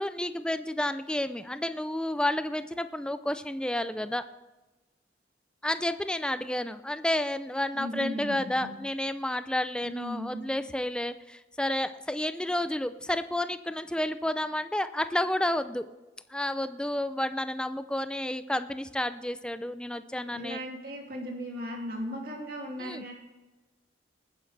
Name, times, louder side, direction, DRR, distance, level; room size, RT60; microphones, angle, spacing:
voice 1, 0.0-4.2 5.6-15.9 16.3-20.6 22.8-23.0, left 1 dB, 5° left, 11 dB, 0.4 m, -31 dB
voice 2, 7.7-8.7 9.8-10.4 20.3-23.1, equal, 55° right, -1 dB, 2.7 m, -37 dB
20.0 x 9.7 x 3.3 m, 1.2 s
head